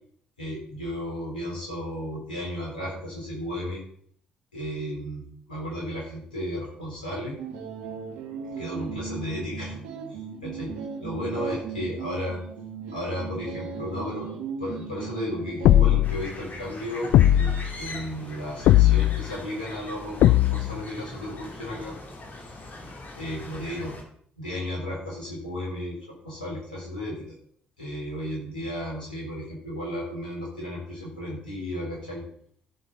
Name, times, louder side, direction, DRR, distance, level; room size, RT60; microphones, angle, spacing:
voice 1, 0.4-3.8 4.5-7.4 8.6-9.7 10.1-10.7 11.0-12.4 12.9-14.3 14.6-22.0 22.4-24.0 24.4-26.0 26.2-27.3 27.8-32.2, equal, 90° left, -4 dB, 3.7 m, -34 dB
sound 1, 7.4-16.0, right 6 dB, 70° right, 1.5 m, -37 dB
sound 2, 15.6-16.3 17.1-17.7 18.7-19.3 20.2-20.8, left 13 dB, 60° left, 0.3 m, -18 dB
sound 3, 16.0-24.0, left 2 dB, 45° left, 2.6 m, -41 dB
14.5 x 7.3 x 4.0 m, 0.62 s
figure-of-eight pair, 45°, 4 cm